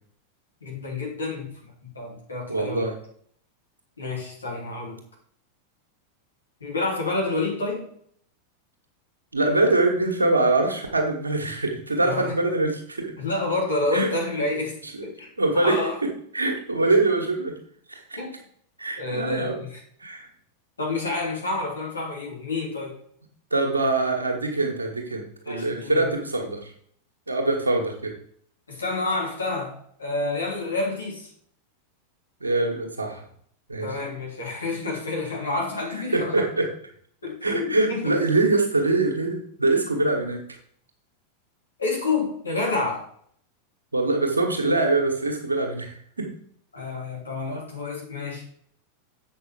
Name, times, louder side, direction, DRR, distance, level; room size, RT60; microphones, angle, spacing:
voice 1, 0.6-1.5 1.8-2.8 4.0-5.0 6.6-7.9 12.0-12.3 13.2-15.3 15.5-15.9 18.2-18.3 19.0-19.8 20.8-23.0 25.4-26.1 28.7-29.7 30.0-31.3 33.8-36.4 37.2-38.1 41.8-43.0 46.7-48.4, left 3 dB, 75° left, -2 dB, 3.3 m, -29 dB
voice 2, 2.5-2.9 9.3-13.1 13.9-14.1 14.4-14.5 15.4-16.1 16.3-17.5 17.9-18.0 18.8-19.6 20.0-20.3 23.5-26.7 27.3-28.1 32.4-33.2 33.7-33.9 36.1-36.7 37.4-40.4 43.9-46.3, right 2 dB, 80° right, 2 dB, 1.8 m, -23 dB
7.9 x 6.0 x 5.0 m, 0.63 s
figure-of-eight pair, 90°, 0 cm